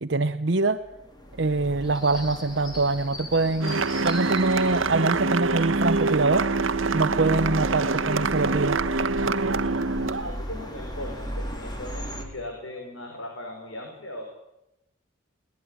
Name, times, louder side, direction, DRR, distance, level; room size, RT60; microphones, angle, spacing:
voice 1, 0.0-0.8 1.4-6.5 6.9-8.8, right 3 dB, 60° right, 6 dB, 0.9 m, -24 dB
sound 1, 0.8-12.2, equal, 20° left, 3.8 m, -37 dB
sound 2, 3.6-10.4, right 3 dB, 85° right, 1.2 m, -25 dB
voice 2, 10.2-14.2, left 1 dB, 85° left, 2 dB, 4.9 m, -38 dB
20.5 x 19.5 x 9.7 m, 0.89 s
head